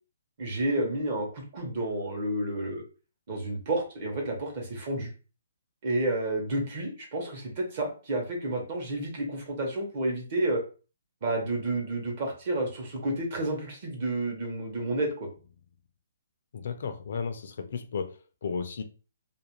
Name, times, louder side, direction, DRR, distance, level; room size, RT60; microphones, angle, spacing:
voice 1, 0.4-2.8 3.3-5.1 5.8-10.6 11.2-15.3, right 1 dB, 35° right, 1 dB, 0.8 m, -30 dB
voice 2, 16.5-18.1 18.4-18.8, left 5 dB, 55° left, 8 dB, 0.4 m, -33 dB
2.4 x 2.1 x 2.9 m, 0.35 s
hypercardioid pair, 170°, 0 cm